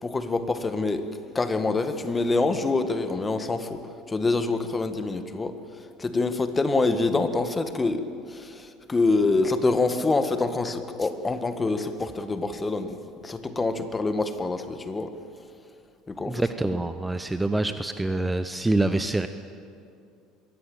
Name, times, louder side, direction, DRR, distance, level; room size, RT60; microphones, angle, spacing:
voice 1, 0.0-1.1 1.3-3.8 4.1-5.6 6.0-15.2 16.1-16.4, left 3 dB, 20° left, 9 dB, 1.8 m, -26 dB
voice 2, 16.3-19.3, right 2 dB, 10° right, 10 dB, 0.9 m, -26 dB
23.0 x 16.0 x 9.0 m, 2.5 s
hypercardioid pair, 65°, 0 cm